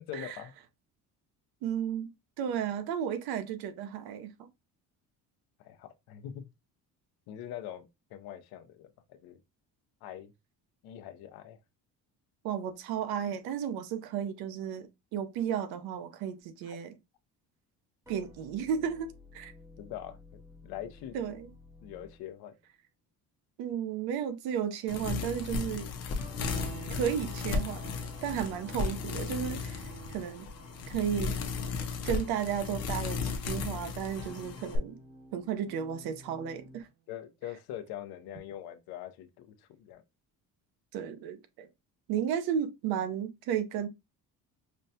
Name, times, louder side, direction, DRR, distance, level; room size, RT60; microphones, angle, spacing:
voice 1, 0.1-0.5 5.6-6.5 7.3-9.4 10.0-10.3 10.8-11.6 16.7-16.8 19.8-21.2 21.8-22.5 37.1-40.0, left 11 dB, 85° left, 0.7 m, -43 dB
voice 2, 1.6-2.1 2.4-4.3 12.4-16.9 18.1-19.5 21.1-21.5 23.6-25.9 26.9-27.9 28.2-30.5 30.9-31.3 32.0-35.0 35.3-36.9 40.9-41.7 42.1-43.9, right 8 dB, 85° right, 0.7 m, -33 dB
sound 1, 18.0-22.7 26.2-30.5 34.2-36.8, left 1 dB, 10° right, 0.5 m, -53 dB
sound 2, 24.9-34.8, left 5 dB, 45° left, 0.6 m, -35 dB
sound 3, 26.4-36.9, right 12 dB, 50° right, 0.6 m, -52 dB
5.3 x 2.2 x 2.7 m
cardioid pair, 180°, 36 cm